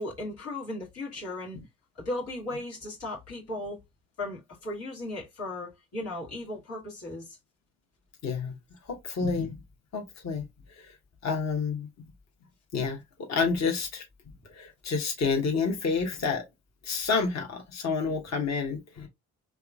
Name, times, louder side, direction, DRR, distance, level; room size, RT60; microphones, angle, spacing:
voice 1, 0.0-1.6 2.0-3.8 4.2-7.4, left 1 dB, 80° left, 1.7 m, -36 dB
voice 2, 8.2-8.5 8.9-9.5 9.9-10.4 11.2-11.9 12.7-13.0 13.3-14.0 14.5-16.4 16.8-19.1, left 5 dB, 45° left, 1.0 m, -29 dB
3.5 x 3.1 x 2.3 m
hypercardioid pair, 45°, 39 cm